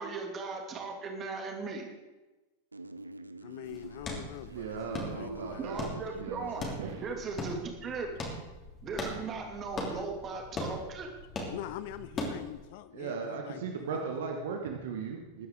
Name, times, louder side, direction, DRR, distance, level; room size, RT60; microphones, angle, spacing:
voice 1, 0.0-1.9 5.6-6.7 7.0-8.2 8.8-11.1, right 4 dB, 25° right, 3 dB, 2.5 m, -38 dB
sound 1, 2.7-6.7, right 2 dB, 80° right, 0.6 m, -45 dB
voice 2, 3.4-5.6 9.9-10.0 11.5-14.0, left 12 dB, 50° left, 14 dB, 0.6 m, -44 dB
sound 2, 3.6-12.6, left 1 dB, 25° left, 3.1 m, -40 dB
voice 3, 4.5-5.8 6.1-7.1 12.9-15.5, right 5 dB, 55° right, 3 dB, 1.4 m, -37 dB
21.0 x 9.6 x 3.7 m, 1.1 s
figure-of-eight pair, 90°, 0 cm